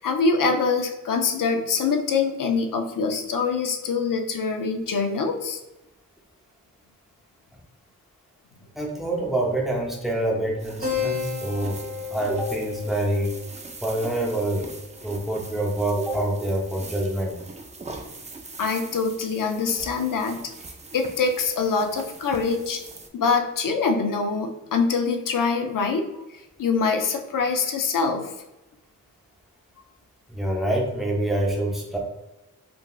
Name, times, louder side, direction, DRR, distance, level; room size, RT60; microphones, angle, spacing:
voice 1, 0.0-5.6 18.6-20.4 20.9-22.8 23.1-26.2 26.6-28.3, left 4 dB, 70° left, 5 dB, 0.5 m, -24 dB
voice 2, 8.7-11.8 12.1-13.4 13.8-14.7 15.0-17.4 30.3-32.0, right 1 dB, ahead, -2 dB, 0.7 m, -26 dB
sound 1, 10.6-23.1, right 3 dB, 20° right, 0.3 m, -42 dB
Keyboard (musical), 10.8-15.8, left 6 dB, 40° right, 1.1 m, -34 dB
3.8 x 2.3 x 2.3 m, 0.97 s
wide cardioid pair, 85°, 33 cm